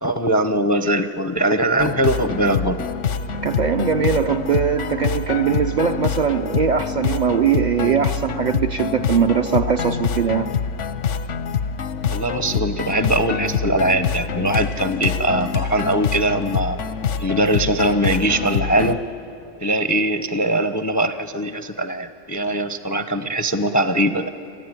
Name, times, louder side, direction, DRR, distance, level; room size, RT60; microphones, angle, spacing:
voice 1, 0.0-2.8 12.1-16.8 17.2-19.0 19.6-24.3, right 1 dB, 25° left, 10 dB, 0.4 m, -21 dB
sound 1, 1.8-19.0, left 6 dB, 90° left, 1.1 m, -25 dB
voice 2, 3.4-10.5, right 7 dB, 50° right, 6 dB, 0.6 m, -20 dB
27.0 x 15.0 x 9.7 m, 2.7 s
omnidirectional pair, 1.2 m